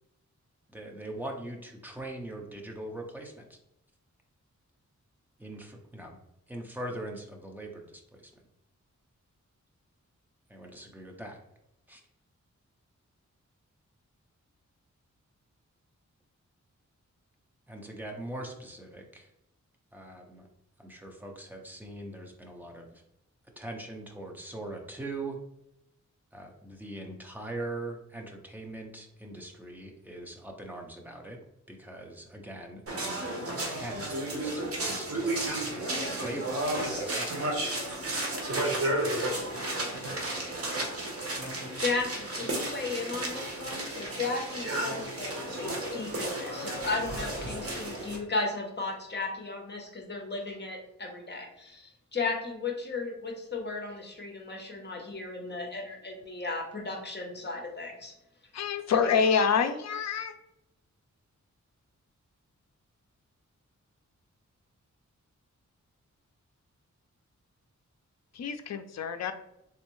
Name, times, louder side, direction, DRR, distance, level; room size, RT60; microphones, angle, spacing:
voice 1, 0.7-3.6 5.4-6.2 6.5-8.3 10.5-11.4 11.9-12.0 17.7-19.3 19.9-20.5 20.8-23.0 23.6-25.4 26.3-31.4 31.7-37.6, right 1 dB, 5° right, 1 dB, 0.6 m, -41 dB
sound 1, 32.9-48.2, right 1 dB, 50° right, 1.0 m, -33 dB
voice 2, 41.8-58.1, left 3 dB, 35° left, 1 dB, 0.8 m, -35 dB
voice 3, 58.5-60.3 68.3-69.3, left 6 dB, 60° left, 8 dB, 0.4 m, -27 dB
3.7 x 3.2 x 3.0 m, 0.82 s
wide cardioid pair, 140°, 30 cm